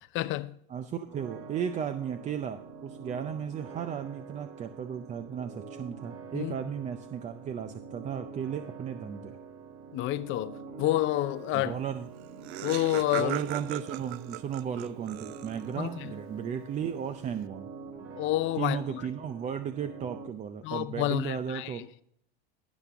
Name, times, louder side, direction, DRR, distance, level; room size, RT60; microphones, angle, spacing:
voice 1, 0.1-0.5 6.3-6.5 9.9-11.8 12.6-13.4 15.8-16.1 18.2-19.0 20.6-21.9, left 15 dB, 40° left, 0.6 m, -29 dB
voice 2, 0.7-9.4 11.5-12.1 13.2-17.7 18.6-21.8, right 8 dB, 25° right, 0.5 m, -35 dB
sound 1, 1.1-20.3, right 5 dB, 45° right, 2.3 m, -46 dB
Laughter, 11.9-12.0 12.1-15.8, right 16 dB, 80° right, 0.5 m, -39 dB
17.0 x 5.8 x 3.5 m
supercardioid pair, 130°, 31 cm